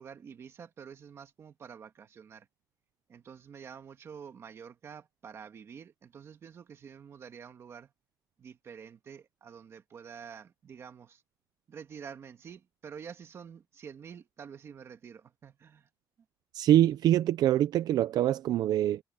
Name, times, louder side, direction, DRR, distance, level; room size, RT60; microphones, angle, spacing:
voice 1, 0.0-2.5 3.1-7.9 8.4-11.2 11.7-15.9, right 7 dB, 40° right, 1.8 m, -48 dB
voice 2, 16.5-19.0, right 12 dB, 65° right, 0.5 m, -24 dB
cardioid pair, 180°, 7 cm